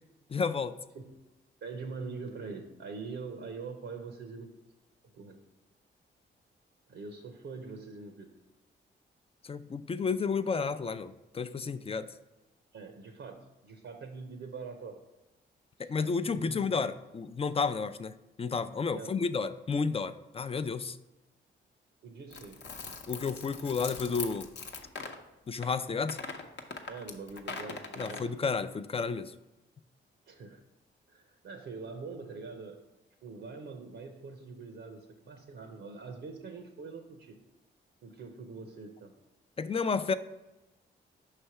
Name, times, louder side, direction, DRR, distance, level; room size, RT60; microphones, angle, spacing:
voice 1, 0.3-0.7 9.4-12.1 15.8-21.0 23.1-24.5 25.5-26.2 28.0-29.3 39.6-40.1, left 5 dB, 30° left, 12 dB, 0.4 m, -31 dB
voice 2, 1.6-4.5 5.1-5.4 6.9-8.3 12.7-15.0 15.8-16.0 16.3-16.7 18.9-19.1 22.0-22.6 26.9-28.2 30.3-30.6 31.1-32.8 33.2-37.4 38.0-39.1, right 4 dB, 75° right, 4 dB, 0.7 m, -43 dB
sound 1, 22.3-25.2 25.6-25.8 26.1-28.3, left 4 dB, 60° left, 0.7 m, -41 dB
5.5 x 3.3 x 5.6 m, 1.0 s
supercardioid pair, 55°, 21 cm